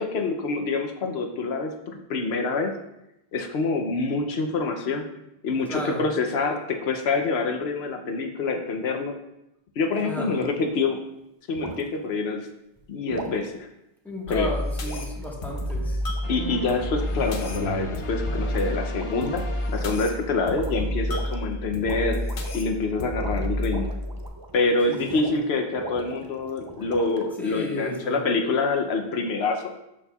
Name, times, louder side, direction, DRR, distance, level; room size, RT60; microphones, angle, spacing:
voice 1, 0.0-2.7 3.3-5.1 5.4-9.1 9.8-11.0 11.5-12.5 12.9-13.7 14.3-14.5 16.3-22.2 22.5-23.9 24.5-29.7, left 3 dB, 85° left, 4 dB, 0.9 m, -26 dB
voice 2, 5.6-6.1 10.0-10.5 14.0-16.0 24.9-25.4 27.4-28.2, left 1 dB, ahead, -3 dB, 1.4 m, -34 dB
sound 1, 10.3-10.6 11.5-11.9 13.1-13.4 14.8-16.7 17.4-17.9 18.2-18.6 18.9-19.4 19.7-20.1 20.5-21.4 21.8-22.7 23.0-25.4 25.8-27.3, right 2 dB, 25° right, 0.6 m, -39 dB
sound 2, 14.3-24.3, left 1 dB, 60° left, 1.0 m, -30 dB
sound 3, 16.2-20.7, left 3 dB, 45° left, 0.5 m, -39 dB
12.0 x 4.2 x 2.3 m, 0.88 s
omnidirectional pair, 1.0 m